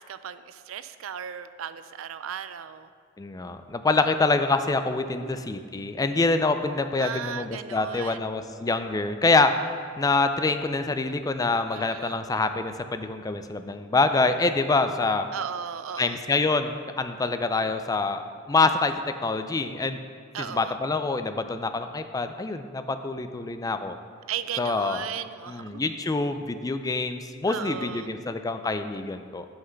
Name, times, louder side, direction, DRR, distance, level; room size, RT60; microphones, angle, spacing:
voice 1, 0.0-2.9 5.1-5.4 7.0-8.2 11.7-12.2 15.3-16.2 20.3-20.8 24.3-25.8 27.5-28.1, right 8 dB, 75° right, 12 dB, 0.4 m, -36 dB
voice 2, 3.2-9.5 10.0-15.3 16.0-18.2 18.5-20.0 20.4-24.0 24.6-25.0 25.5-29.4, left 3 dB, 20° left, 9 dB, 0.4 m, -26 dB
8.2 x 5.8 x 5.7 m, 2.1 s
head